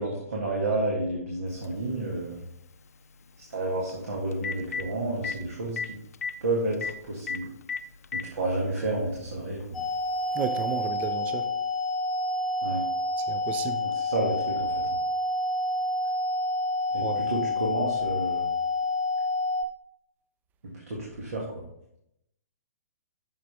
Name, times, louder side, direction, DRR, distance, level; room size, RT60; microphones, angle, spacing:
voice 1, 0.0-2.4 3.5-5.8 6.4-7.5 8.1-9.6 12.6-12.8 13.8-14.7 16.9-18.4 20.6-21.4, right 2 dB, 65° right, 1.9 m, -30 dB
Telephone, 1.6-1.7 3.9-4.0 4.3-4.8 5.2-5.3 5.8-5.9 6.1-6.3 6.8-6.9 7.3-7.4 7.7-8.3 9.2-9.3 10.8-10.9, left 6 dB, 70° left, 0.5 m, -31 dB
sound 1, 9.7-19.6, left 2 dB, 5° left, 1.1 m, -28 dB
voice 2, 10.3-11.5 13.3-13.8 17.0-17.2, right 7 dB, 20° right, 0.6 m, -32 dB
8.8 x 6.4 x 3.4 m
figure-of-eight pair, 125°, 9 cm